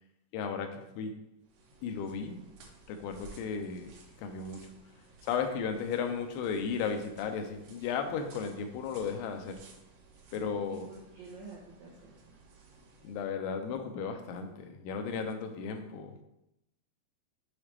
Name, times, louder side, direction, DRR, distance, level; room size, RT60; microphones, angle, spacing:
voice 1, 0.3-1.1 1.8-2.4 2.9-3.9 4.2-4.7 5.2-9.6 10.3-10.9 13.0-16.2, left 6 dB, 85° left, 6 dB, 2.7 m, -35 dB
sound 1, 1.4-13.3, right 3 dB, 70° right, 2.1 m, -57 dB
voice 2, 10.3-12.4, right 3 dB, 85° right, -5 dB, 1.6 m, -49 dB
7.2 x 4.0 x 3.3 m, 0.88 s
omnidirectional pair, 4.7 m